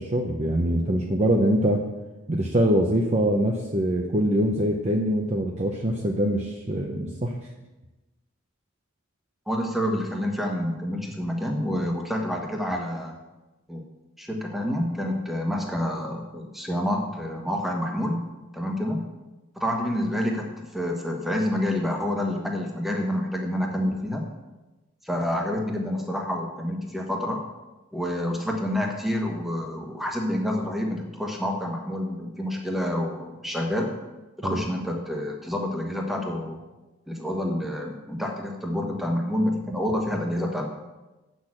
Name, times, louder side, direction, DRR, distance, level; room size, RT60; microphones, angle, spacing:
voice 1, 0.0-1.8 2.3-7.3 34.4-34.6, right 1 dB, 30° right, 1 dB, 0.7 m, -23 dB
voice 2, 9.5-13.2 13.7-13.8 14.2-18.2 18.5-19.0 19.5-20.5 20.7-24.2 25.0-27.4 27.9-33.9 34.4-36.6 37.1-40.7, left 1 dB, ahead, 0 dB, 1.3 m, -28 dB
8.2 x 6.3 x 7.6 m, 1.1 s
head